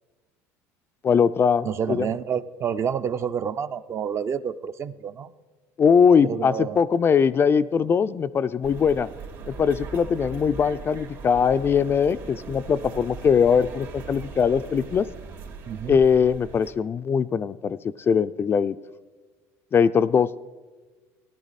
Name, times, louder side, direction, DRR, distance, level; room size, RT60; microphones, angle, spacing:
voice 1, 1.0-2.1 5.8-9.1 9.5-15.1 15.9-17.8 18.1-18.8 19.7-20.4, left 6 dB, 30° left, 13 dB, 0.3 m, -21 dB
voice 2, 1.6-5.3 6.2-6.8 15.7-16.0, right 8 dB, 40° right, 12 dB, 0.5 m, -29 dB
sound 1, 8.6-16.7, right 5 dB, 70° right, 2.4 m, -40 dB
15.5 x 10.5 x 4.1 m, 1.3 s
supercardioid pair, 90°, 7 cm